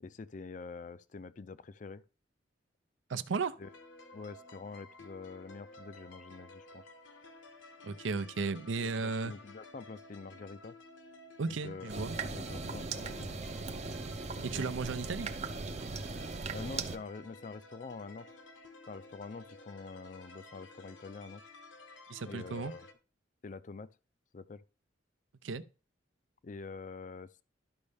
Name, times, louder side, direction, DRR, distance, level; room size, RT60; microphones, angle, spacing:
voice 1, 0.0-2.0 3.6-3.7 4.1-6.9 8.8-10.8 11.5-13.4 14.4-14.9 15.2-15.3 16.5-18.3 18.9-21.4 22.3-22.9 23.4-23.9 24.3-24.6 26.4-27.4, left 4 dB, 45° left, 0.4 m, -46 dB
voice 2, 3.1-3.6 7.8-9.3 11.4-12.1 14.4-15.3 22.1-22.7 25.4-25.6, right 4 dB, 90° right, 0.6 m, -35 dB
sound 1, 3.6-22.9, left 2 dB, 80° left, 1.1 m, -54 dB
sound 2, 11.9-17.0, right 4 dB, 35° right, 0.5 m, -39 dB
12.0 x 5.3 x 3.4 m
head